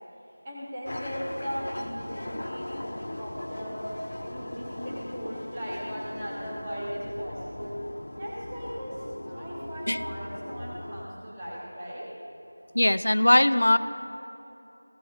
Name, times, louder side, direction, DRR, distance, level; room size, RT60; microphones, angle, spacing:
voice 1, 0.4-3.9 4.3-7.8 8.2-12.1 13.5-13.6, equal, 15° right, -8 dB, 1.4 m, -38 dB
sound 1, 0.9-11.1, left 1 dB, 50° left, 0.8 m, -38 dB
voice 2, 12.7-13.8, left 1 dB, 70° left, 12 dB, 0.5 m, -20 dB
16.5 x 14.0 x 3.6 m, 3.0 s
figure-of-eight pair, 175°, 0 cm